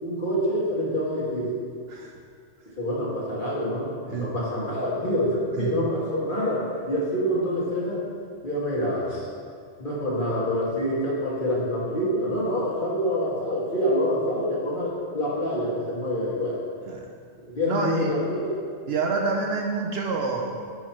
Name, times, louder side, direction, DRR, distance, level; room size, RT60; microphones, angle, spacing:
voice 1, 0.0-1.5 2.8-8.0 8.4-9.3 9.8-16.6 17.5-18.5, equal, 45° left, -6 dB, 1.5 m, -26 dB
voice 2, 17.7-18.2 18.9-20.6, right 4 dB, 65° right, 1 dB, 0.7 m, -27 dB
5.7 x 4.7 x 4.4 m, 2.1 s
omnidirectional pair, 1.3 m